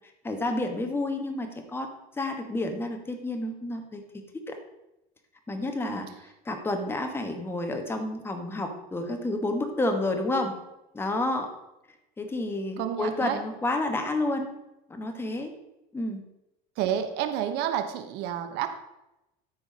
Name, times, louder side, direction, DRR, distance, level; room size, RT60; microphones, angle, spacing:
voice 1, 0.2-1.9 2.1-4.0 4.5-4.6 5.5-10.5 10.9-11.5 12.2-14.5 14.9-15.5 15.9-16.2, left 2 dB, 10° left, 5 dB, 1.3 m, -30 dB
voice 2, 12.8-13.4 16.8-18.7, right 10 dB, 65° right, 9 dB, 1.1 m, -30 dB
13.0 x 4.7 x 5.3 m, 0.92 s
cardioid pair, 145°, 18 cm